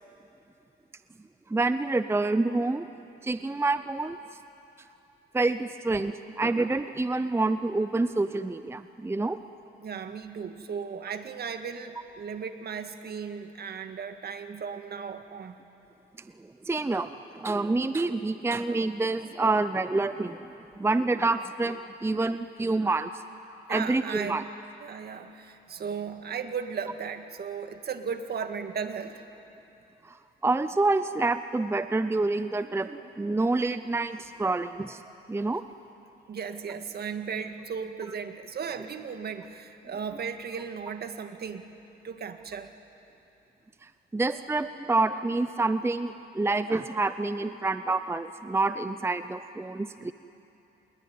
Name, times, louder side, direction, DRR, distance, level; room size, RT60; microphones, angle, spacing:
voice 1, 1.5-2.9 3.2-4.2 5.3-9.4 16.7-20.4 20.8-23.1 23.7-24.4 30.1-30.2 30.4-35.0 35.3-35.6 44.1-50.1, right 3 dB, 10° right, 11 dB, 0.6 m, -27 dB
voice 2, 9.8-15.6 23.7-24.5 24.8-29.3 36.3-41.7 42.0-42.7, right 6 dB, 55° right, 8 dB, 1.9 m, -36 dB
28.0 x 21.0 x 9.5 m, 2.8 s
cardioid pair, 90°, 20 cm